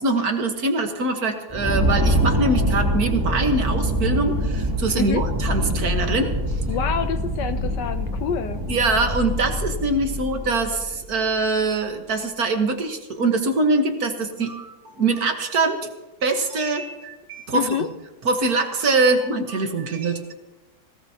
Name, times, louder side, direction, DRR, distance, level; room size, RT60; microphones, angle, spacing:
voice 1, 0.0-6.3 8.7-15.9 16.2-17.8 18.3-20.3, right 3 dB, 50° right, 5 dB, 1.7 m, -23 dB
sound 1, 1.5-11.1, equal, 10° right, 2.5 m, -24 dB
voice 2, 6.7-8.6 17.5-17.9, left 8 dB, 70° left, 10 dB, 1.2 m, -27 dB
20.0 x 17.5 x 2.9 m, 1.1 s
omnidirectional pair, 2.2 m